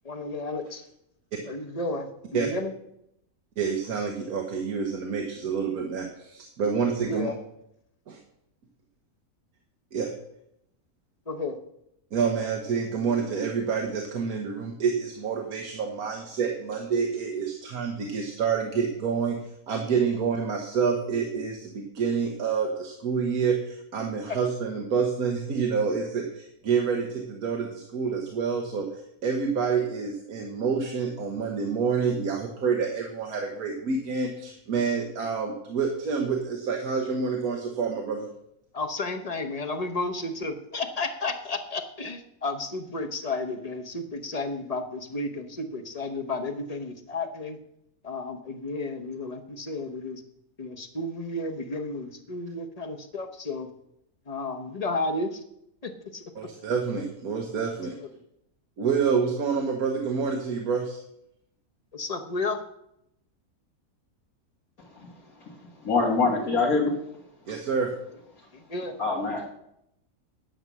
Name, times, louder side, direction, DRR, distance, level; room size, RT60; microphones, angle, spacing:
voice 1, 0.0-0.8 1.5-2.7 7.1-7.3 11.3-11.6 38.7-47.6 48.0-50.2 50.6-53.7 54.3-55.4 55.8-56.2 57.6-57.7 61.9-62.6 68.7-69.0, left 2 dB, 30° left, 7 dB, 0.9 m, -32 dB
voice 2, 3.6-7.3 8.1-8.2 9.9-10.1 12.1-19.4 19.7-38.3 56.3-58.0 58.8-61.0 67.5-67.9, right 5 dB, 90° right, 2 dB, 1.6 m, -28 dB
voice 3, 65.8-66.9 69.0-69.5, left 4 dB, 80° left, -4 dB, 2.1 m, -24 dB
10.0 x 6.9 x 6.1 m, 0.78 s
omnidirectional pair, 1.5 m